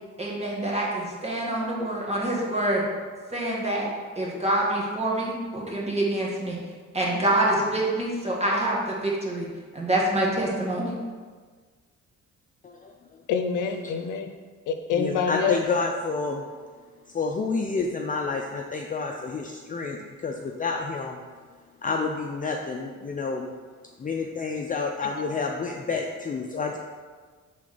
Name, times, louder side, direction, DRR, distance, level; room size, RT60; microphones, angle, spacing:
voice 1, 0.2-2.8 3.3-3.9 4.2-6.6 6.9-9.5 9.7-10.9, right 1 dB, 20° right, -4 dB, 1.8 m, -26 dB
voice 2, 12.6-12.9 15.0-16.4 17.1-21.2 21.8-23.5 24.0-26.8, left 4 dB, 25° left, 1 dB, 0.5 m, -29 dB
voice 3, 13.3-14.3 14.7-15.6 25.9-26.0, left 6 dB, 85° left, 6 dB, 0.6 m, -26 dB
5.7 x 3.8 x 5.0 m, 1.5 s
cardioid pair, 90°, 30 cm